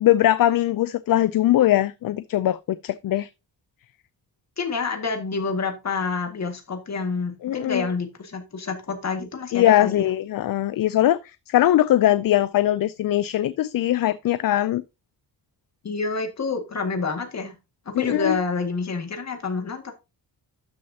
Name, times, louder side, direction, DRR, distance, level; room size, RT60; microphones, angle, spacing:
voice 1, 0.0-2.6 2.8-3.3 7.4-7.9 9.5-11.2 11.5-14.8 17.9-18.4, left 13 dB, 55° left, 0.4 m, -20 dB
voice 2, 4.6-10.1 15.8-17.5 17.9-19.9, left 4 dB, 40° left, 2.0 m, -28 dB
12.5 x 6.3 x 2.8 m
wide cardioid pair, 175°, 41 cm